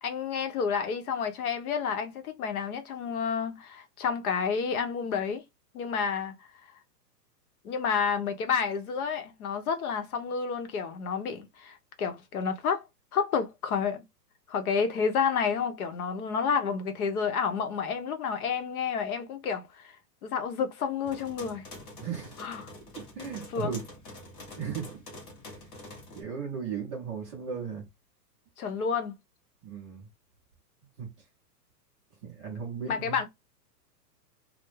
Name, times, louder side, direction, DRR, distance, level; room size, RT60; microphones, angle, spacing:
voice 1, 0.0-5.4 5.7-6.5 7.6-12.8 13.1-14.0 14.5-20.0 20.2-21.7 22.4-22.7 23.5-23.8 28.6-29.1 32.9-33.3, left 6 dB, 60° left, 0.7 m, -30 dB
sound 1, 21.0-26.2, left 2 dB, 25° left, 0.6 m, -46 dB
voice 2, 22.0-22.3 23.0-23.8 24.5-25.0 25.5-25.7 26.1-27.9 29.6-30.1 31.0-31.1 32.2-33.2, right 6 dB, 20° right, 0.4 m, -36 dB
2.3 x 2.0 x 3.1 m
hypercardioid pair, 135°, 50 cm